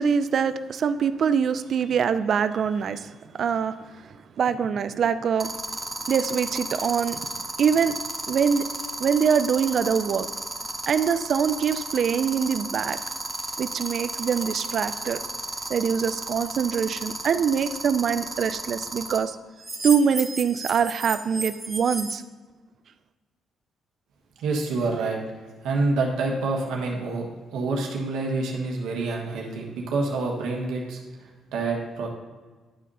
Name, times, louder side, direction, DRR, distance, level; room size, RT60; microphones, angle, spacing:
voice 1, 0.0-3.8 4.4-5.5 6.1-7.2 7.6-8.0 8.3-8.6 9.0-10.3 10.9-13.0 13.6-15.2 15.7-19.4 19.8-22.2, right 7 dB, 60° right, 12 dB, 0.4 m, -24 dB
sound 1, 2.5-2.8 5.4-19.2 19.6-22.1, right 2 dB, 20° right, 1.1 m, -32 dB
voice 2, 24.4-25.2 25.6-27.2 27.5-31.0 31.5-32.1, right 3 dB, 85° right, 0 dB, 1.4 m, -27 dB
10.5 x 3.7 x 5.5 m, 1.4 s
cardioid pair, 90°, 0 cm